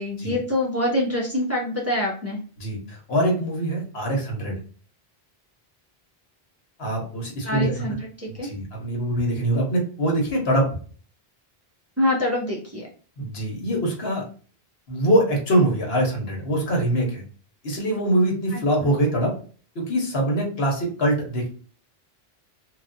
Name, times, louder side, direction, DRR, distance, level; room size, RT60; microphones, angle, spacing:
voice 1, 0.0-2.4 7.4-8.5 12.0-12.9 18.5-18.6, left 1 dB, 15° right, -3 dB, 0.7 m, -25 dB
voice 2, 2.6-4.6 6.8-7.8 8.3-10.7 13.2-14.2 14.9-17.2 17.6-19.3 19.7-21.5, right 1 dB, 80° left, 0 dB, 1.3 m, -23 dB
3.1 x 2.7 x 2.6 m, 0.41 s
omnidirectional pair, 1.0 m